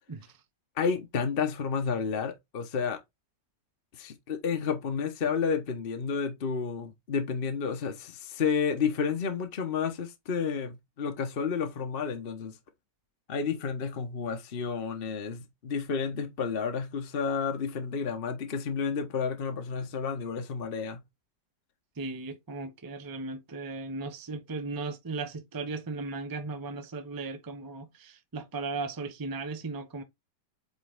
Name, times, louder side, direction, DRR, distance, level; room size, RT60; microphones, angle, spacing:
voice 1, 0.8-3.0 3.9-12.6 13.3-21.0, left 6 dB, 40° left, 1.1 m, -31 dB
voice 2, 22.0-30.0, right 3 dB, 20° right, 0.6 m, -36 dB
8.4 x 3.8 x 3.6 m
omnidirectional pair, 1.9 m